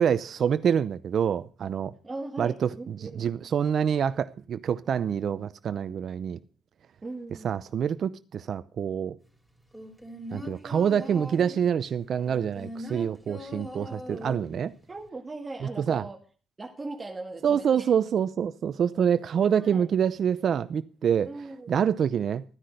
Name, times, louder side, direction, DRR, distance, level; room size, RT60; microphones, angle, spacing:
voice 1, 0.0-1.9 2.4-6.4 7.4-9.2 10.3-14.7 15.8-16.0 17.4-21.3 21.7-22.4, right 8 dB, 60° right, 0.7 m, -26 dB
voice 2, 2.0-3.3 7.0-7.6 14.9-16.2 16.6-17.9 19.6-19.9 21.3-21.7, right 2 dB, 25° right, 1.9 m, -39 dB
sound 1, 9.7-11.7 12.2-14.7 15.0-15.1, left 1 dB, 5° left, 4.1 m, -40 dB
13.5 x 10.0 x 6.6 m
cardioid pair, 90°, 0 cm